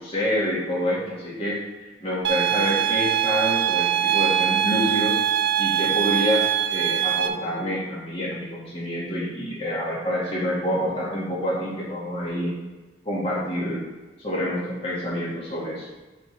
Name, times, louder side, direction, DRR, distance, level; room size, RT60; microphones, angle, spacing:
voice 1, 0.0-1.6 2.0-5.2 5.6-12.5 13.1-13.8 14.2-15.9, equal, 30° left, -6 dB, 2.1 m, -27 dB
sound 1, 2.2-7.3, right 10 dB, 70° right, 0.7 m, -22 dB
9.8 x 3.8 x 4.8 m, 1.2 s
head